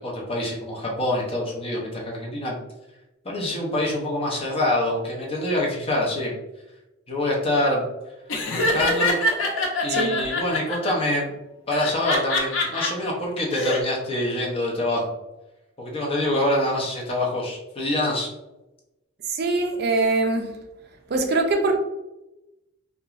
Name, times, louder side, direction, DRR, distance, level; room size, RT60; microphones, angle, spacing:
voice 1, 0.0-2.6 3.2-6.4 7.1-7.9 8.5-9.2 9.8-11.3 11.7-15.0 15.8-18.3, left 1 dB, 30° left, 0.6 m, -25 dB
Laughter, 8.3-10.9 11.7-12.9 13.4-13.8, left 2 dB, 80° left, 0.6 m, -24 dB
voice 2, 19.3-20.6 21.1-21.8, right 3 dB, 50° right, 0.4 m, -23 dB
2.9 x 2.3 x 2.4 m
head